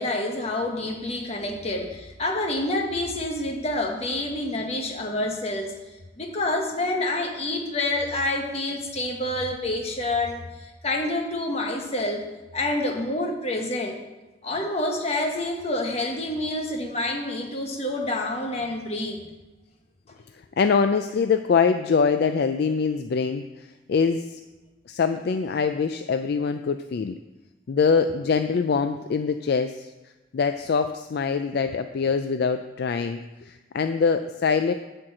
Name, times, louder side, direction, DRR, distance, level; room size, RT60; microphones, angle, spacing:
voice 1, 0.0-5.8 6.2-12.2 12.5-14.0 14.4-19.2, left 1 dB, 30° left, 2 dB, 1.2 m, -28 dB
voice 2, 20.6-24.4 24.9-27.2 27.7-29.9 30.3-34.7, left 5 dB, 55° left, 8 dB, 0.3 m, -24 dB
10.0 x 4.5 x 7.6 m, 1.1 s
head